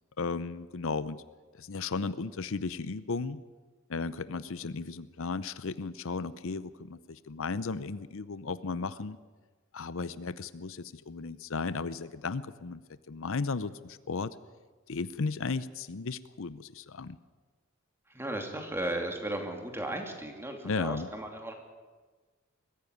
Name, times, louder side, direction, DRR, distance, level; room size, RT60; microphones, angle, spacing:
voice 1, 0.2-1.2 1.6-3.4 3.9-9.2 9.7-12.8 13.1-14.4 14.9-17.2 20.6-21.1, left 4 dB, 70° left, 15 dB, 0.7 m, -35 dB
voice 2, 18.1-21.5, right 1 dB, 10° right, 4 dB, 2.8 m, -35 dB
22.0 x 15.0 x 9.4 m, 1.4 s
head